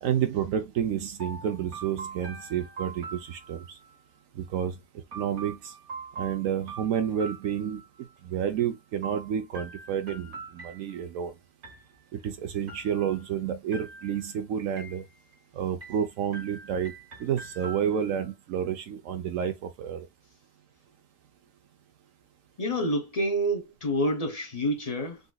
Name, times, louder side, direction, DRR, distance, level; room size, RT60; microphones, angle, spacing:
voice 1, 0.0-3.8 4.4-4.7 5.1-5.7 6.2-7.8 8.2-11.3 12.1-15.0 15.6-16.9 17.2-20.1, right 9 dB, 70° right, 0.9 m, -30 dB
sound 1, 1.2-3.9 5.1-8.1 9.0-11.2 11.6-12.2 12.7-13.4 13.7-14.4 14.8-15.4 15.8-18.3, right 4 dB, 50° right, 1.4 m, -43 dB
voice 2, 22.6-25.2, equal, 35° left, 0.6 m, -28 dB
3.8 x 2.5 x 2.2 m
omnidirectional pair, 1.6 m